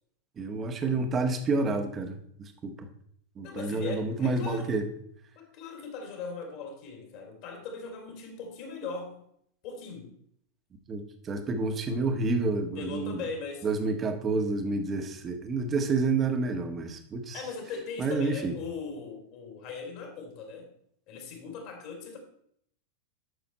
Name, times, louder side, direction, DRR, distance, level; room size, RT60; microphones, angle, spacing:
voice 1, 0.4-2.2 2.6-2.9 3.4-4.9 10.9-13.2 13.6-17.3 18.0-18.5, right 3 dB, 25° right, 6 dB, 1.6 m, -29 dB
voice 2, 3.4-4.7 5.3-9.2 9.6-10.1 12.7-13.7 17.3-20.7 21.1-22.2, left 4 dB, 45° left, 4 dB, 2.8 m, -39 dB
12.0 x 6.8 x 4.3 m, 0.69 s
figure-of-eight pair, 90°, 0 cm